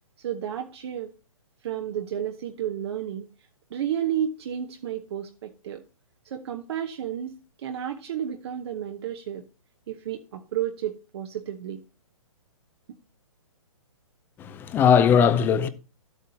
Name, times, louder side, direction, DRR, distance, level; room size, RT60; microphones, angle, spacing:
voice 1, 0.2-1.1 1.6-3.3 3.7-5.8 6.2-9.4 9.9-11.8, right 10 dB, 50° right, 0.9 m, -32 dB
voice 2, 14.4-15.7, left 7 dB, 10° left, 0.5 m, -19 dB
12.5 x 8.1 x 2.8 m
hypercardioid pair, 150°, 18 cm